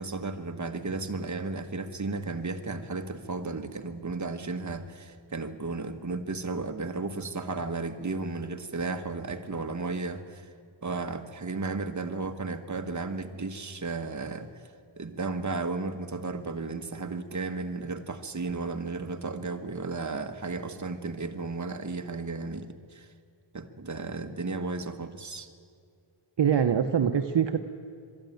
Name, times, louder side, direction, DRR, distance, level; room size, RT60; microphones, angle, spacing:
voice 1, 0.0-10.5 10.8-14.5 15.0-23.1 23.5-25.5, right 3 dB, 35° right, 6 dB, 1.4 m, -34 dB
voice 2, 26.4-27.6, right 8 dB, 60° right, 7 dB, 0.9 m, -24 dB
22.5 x 13.0 x 9.2 m, 2.3 s
wide cardioid pair, 75°, 48 cm